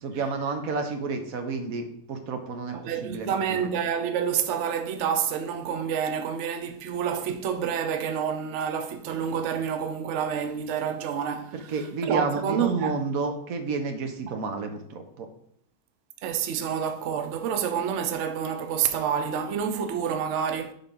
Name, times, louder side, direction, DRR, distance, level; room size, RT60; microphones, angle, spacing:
voice 1, 0.0-3.6 11.5-15.3, right 4 dB, 55° right, 1.2 m, -31 dB
voice 2, 2.7-11.5 12.0-13.0 14.3-14.4 16.2-20.7, right 8 dB, 80° right, 0.6 m, -28 dB
10.5 x 4.0 x 3.7 m
omnidirectional pair, 2.0 m